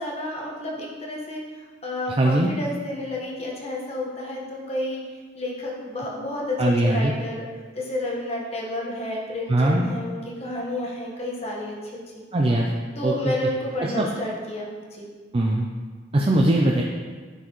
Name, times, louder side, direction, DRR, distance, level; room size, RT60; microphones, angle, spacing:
voice 1, 0.0-7.5 7.7-12.0 12.9-15.1, left 1 dB, 35° left, -3 dB, 1.3 m, -31 dB
voice 2, 2.2-2.5 6.6-7.1 9.5-9.9 12.3-12.7 13.0-13.3 13.8-14.1 15.3-15.6 16.1-16.8, right 1 dB, 30° right, -1 dB, 0.4 m, -20 dB
9.7 x 4.5 x 3.0 m, 1.5 s
head